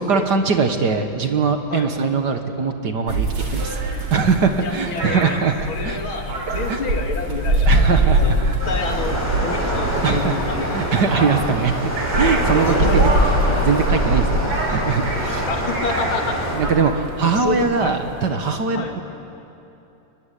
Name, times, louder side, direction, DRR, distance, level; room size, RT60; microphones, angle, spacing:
voice 1, 0.0-3.8 4.1-5.5 5.8-6.0 6.5-6.8 7.7-8.6 10.0-10.4 10.7-11.8 12.2-15.5 16.5-16.9 17.2-19.0, right 5 dB, 55° right, 6 dB, 1.8 m, -21 dB
sound 1, 3.1-18.3, right 1 dB, 90° right, 4.7 m, -23 dB
voice 2, 4.6-5.4 5.7-8.3 8.7-11.3 12.5-13.1 15.5-16.9 17.2-18.0 18.7-18.9, left 4 dB, 65° left, 3 dB, 3.0 m, -29 dB
sound 2, 8.6-16.6, equal, 5° right, 5.4 m, -25 dB
24.0 x 21.0 x 10.0 m, 2.9 s
omnidirectional pair, 2.4 m